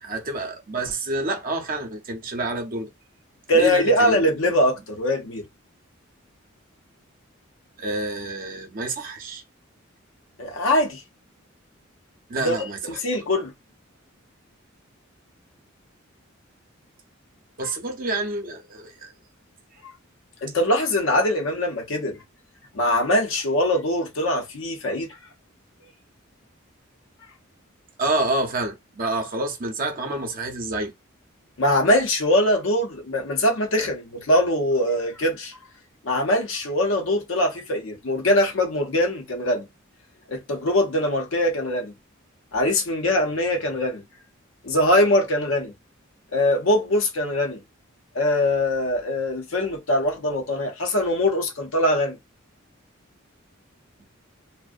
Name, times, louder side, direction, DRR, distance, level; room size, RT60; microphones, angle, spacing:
voice 1, 0.0-2.9 3.5-4.2 7.8-9.4 12.3-12.8 17.6-19.1 28.0-30.9, right 2 dB, 45° right, 0.6 m, -28 dB
voice 2, 3.5-5.5 10.4-11.0 12.4-12.5 12.9-13.5 20.4-22.2 22.7-25.1 31.6-35.6 36.0-39.7 40.3-41.9 42.5-44.0 44.6-45.7 46.3-47.6 48.1-52.2, left 1 dB, 70° left, 0.6 m, -22 dB
2.5 x 2.0 x 2.4 m
head